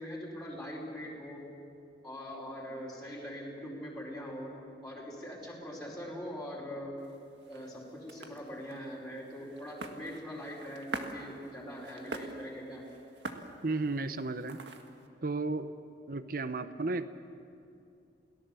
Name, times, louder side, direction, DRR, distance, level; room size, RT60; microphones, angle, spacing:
voice 1, 0.0-1.5 2.0-4.6 4.8-7.0 7.5-12.8, equal, 5° left, -6 dB, 4.8 m, -42 dB
sound 1, 7.0-15.1, right 2 dB, 85° right, 1.8 m, -46 dB
voice 2, 13.6-14.6 15.2-15.7 16.1-17.1, right 3 dB, 55° right, 11 dB, 0.9 m, -33 dB
28.5 x 18.0 x 7.0 m, 2.6 s
head